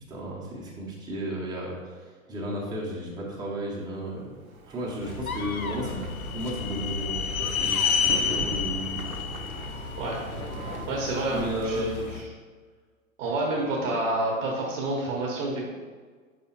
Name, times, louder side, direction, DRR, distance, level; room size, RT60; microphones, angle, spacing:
voice 1, 0.1-1.8 2.3-4.4 4.7-6.0 6.3-9.0 11.3-11.8, right 1 dB, 10° right, -4 dB, 0.7 m, -33 dB
sound 1, 4.2-10.9, right 5 dB, 70° right, 0.6 m, -41 dB
sound 2, 5.0-12.3, left 5 dB, 90° left, 0.5 m, -38 dB
sound 3, 5.4-10.6, left 7 dB, 45° left, 0.7 m, -29 dB
voice 2, 10.9-12.1 13.2-15.6, right 2 dB, 35° right, -2 dB, 0.8 m, -28 dB
5.0 x 3.4 x 2.8 m, 1.5 s
figure-of-eight pair, 110°, 42 cm